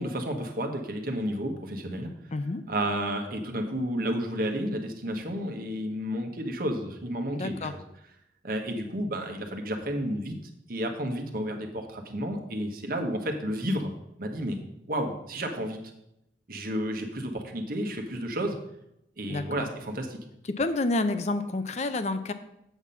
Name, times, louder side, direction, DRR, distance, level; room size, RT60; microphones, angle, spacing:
voice 1, 0.0-2.1 2.7-7.8 8.4-10.3 10.7-13.9 14.2-14.6 14.9-15.8 16.5-18.6 19.2-20.2, equal, 55° right, 3 dB, 1.3 m, -31 dB
voice 2, 2.3-2.6 7.3-7.7 19.3-19.7 20.6-22.3, left 2 dB, 40° left, 10 dB, 0.5 m, -29 dB
8.1 x 5.9 x 5.7 m, 0.82 s
head